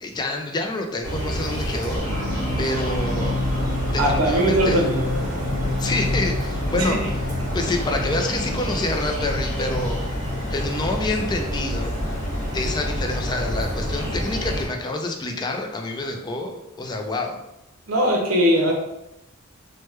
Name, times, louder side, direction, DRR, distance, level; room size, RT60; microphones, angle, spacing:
voice 1, 0.0-2.3 2.6-3.4 3.9-4.8 5.8-7.0 7.5-10.0 10.5-11.9 12.5-17.4, left 2 dB, 20° left, 3 dB, 0.3 m, -27 dB
sound 1, 1.0-14.7, equal, 35° right, 1.3 m, -28 dB
sound 2, 2.0-11.6, left 1 dB, 55° right, 1.4 m, -31 dB
voice 2, 4.0-5.0 6.7-7.0 17.9-18.7, equal, 75° right, 0 dB, 0.7 m, -20 dB
3.1 x 2.1 x 3.1 m, 0.86 s
head